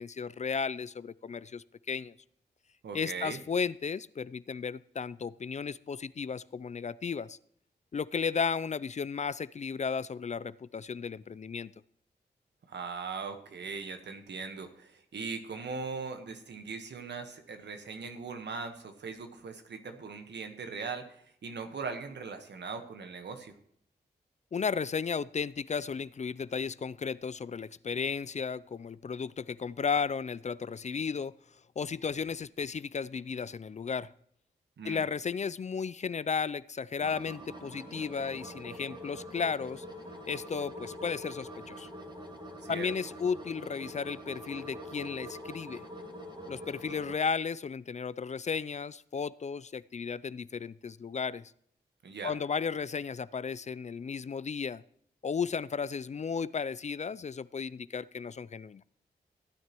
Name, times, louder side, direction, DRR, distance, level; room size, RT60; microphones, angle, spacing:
voice 1, 0.0-2.1 2.9-7.4 7.9-11.7 24.5-31.3 31.8-34.1 34.8-39.8 40.3-41.9 42.7-45.8 46.5-51.4 52.2-54.8 55.2-58.8, left 6 dB, 40° left, 19 dB, 0.4 m, -34 dB
voice 2, 2.8-3.4 12.7-23.5 34.8-35.1 42.6-42.9 52.0-52.3, right 4 dB, 80° right, 6 dB, 1.3 m, -40 dB
sound 1, 37.0-47.2, equal, 25° right, 1.8 m, -44 dB
16.0 x 9.3 x 3.0 m, 0.66 s
supercardioid pair, 40°, 18 cm